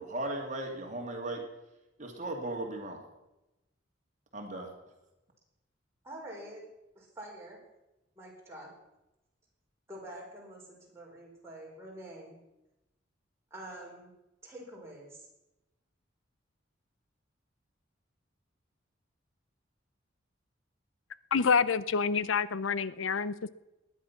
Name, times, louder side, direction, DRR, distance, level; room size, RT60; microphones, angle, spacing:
voice 1, 0.0-1.4 2.0-3.0 4.3-4.7, right 2 dB, 40° right, 2 dB, 2.4 m, -36 dB
voice 2, 6.0-6.7 6.9-7.6 8.1-8.7 9.9-12.4 13.5-14.2 14.4-15.3, right 1 dB, 15° right, -3 dB, 4.8 m, -46 dB
voice 3, 21.3-23.5, left 5 dB, 85° left, 17 dB, 0.6 m, -27 dB
19.5 x 10.5 x 5.8 m, 0.96 s
head